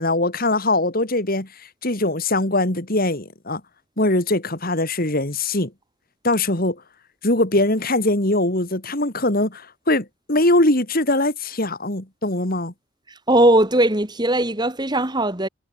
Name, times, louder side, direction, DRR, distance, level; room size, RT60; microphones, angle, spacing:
voice 1, 0.0-3.6 4.0-5.7 6.2-6.8 7.2-12.7, left 2 dB, 40° left, 3.0 m, -21 dB
voice 2, 13.3-15.5, right 1 dB, 20° right, 2.5 m, -18 dB
head